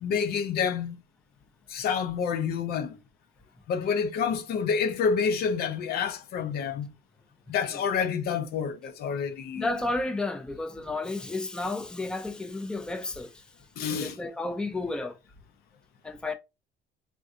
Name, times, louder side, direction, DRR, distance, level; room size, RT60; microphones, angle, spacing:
voice 1, 0.0-1.0 1.7-3.0 3.7-6.9 7.5-9.7 13.8-14.2, left 6 dB, 70° left, 0.6 m, -28 dB
voice 2, 9.6-13.4 14.0-15.2 16.0-16.3, left 2 dB, 5° left, 0.5 m, -32 dB
3.5 x 2.6 x 2.5 m
cardioid pair, 110°, 17 cm